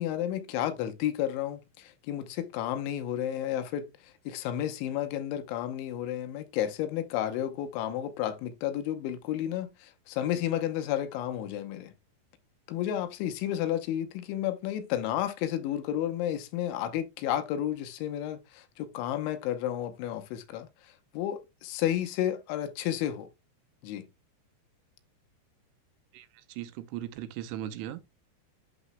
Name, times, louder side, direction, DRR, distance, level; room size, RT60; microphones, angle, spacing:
voice 1, 0.0-11.9 12.7-23.3 23.8-24.1, left 11 dB, 85° left, 3.3 m, -32 dB
voice 2, 26.1-28.0, right 12 dB, 85° right, 3.0 m, -38 dB
11.5 x 4.0 x 2.2 m
omnidirectional pair, 5.4 m